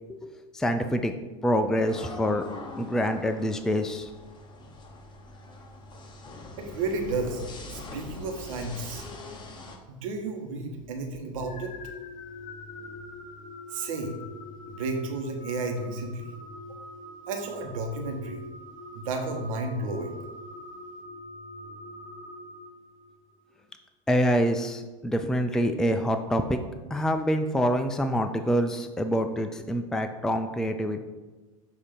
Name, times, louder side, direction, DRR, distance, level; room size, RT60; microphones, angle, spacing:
voice 1, 0.1-1.1 1.4-2.4 2.8-4.1 24.1-26.6 26.9-31.0, equal, 5° left, 7 dB, 0.4 m, -26 dB
sound 1, 1.9-9.8, left 2 dB, 25° left, 1.1 m, -42 dB
voice 2, 6.6-7.4 7.7-9.0 9.9-11.7 13.7-14.2 14.7-16.3 17.3-18.4 18.9-20.2, right 3 dB, 75° right, 4 dB, 1.2 m, -32 dB
sound 2, 11.4-23.3, left 1 dB, 50° left, 1.3 m, -44 dB
7.8 x 2.8 x 5.1 m, 1.2 s
hypercardioid pair, 95°, 18 cm